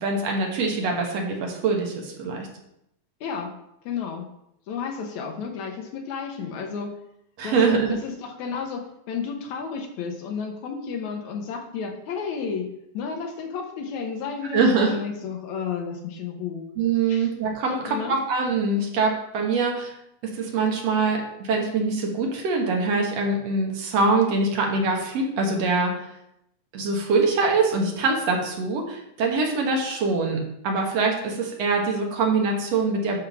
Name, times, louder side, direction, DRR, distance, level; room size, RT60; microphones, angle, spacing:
voice 1, 0.0-2.5 7.4-7.9 14.5-14.9 16.8-19.9 20.2-25.9 26.7-33.2, right 3 dB, 65° right, 1 dB, 2.3 m, -24 dB
voice 2, 3.2-3.5 3.8-4.3 4.7-7.0 7.4-12.7 12.9-16.7 17.1-17.3 17.7-18.1, left 6 dB, 75° left, 3 dB, 2.4 m, -32 dB
10.0 x 3.8 x 5.9 m, 0.79 s
omnidirectional pair, 3.3 m